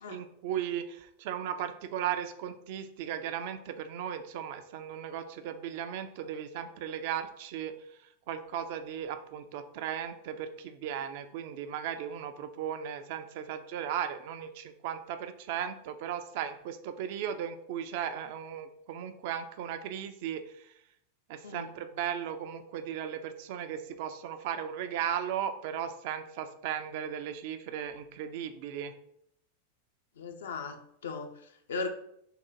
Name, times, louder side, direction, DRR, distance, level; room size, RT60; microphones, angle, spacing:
voice 1, 0.1-7.8 8.3-20.7 21.3-28.9, right 9 dB, 50° right, 9 dB, 0.3 m, -36 dB
voice 2, 30.2-31.9, left 4 dB, 65° left, 6 dB, 0.5 m, -38 dB
3.7 x 2.2 x 4.4 m, 0.72 s
figure-of-eight pair, 90°, 0 cm